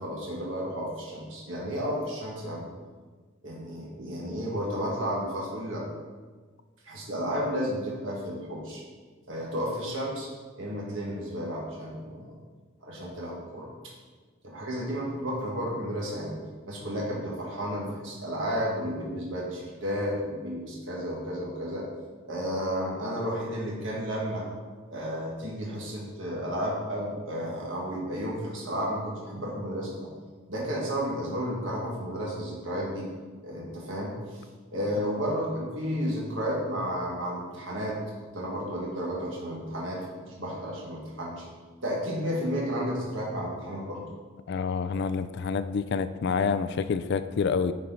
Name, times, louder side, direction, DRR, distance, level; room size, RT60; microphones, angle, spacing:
voice 1, 0.0-2.7 3.4-5.8 6.8-8.8 9.3-12.4 12.8-13.7 14.4-21.9 22.2-24.5 24.9-30.1 30.5-33.1 33.4-34.4 34.7-38.0 38.3-40.0 40.3-41.5 41.8-44.0, equal, 70° right, -4 dB, 1.8 m, -32 dB
voice 2, 44.5-47.7, left 5 dB, 60° left, 12 dB, 0.4 m, -27 dB
10.0 x 4.4 x 4.0 m, 1.4 s
head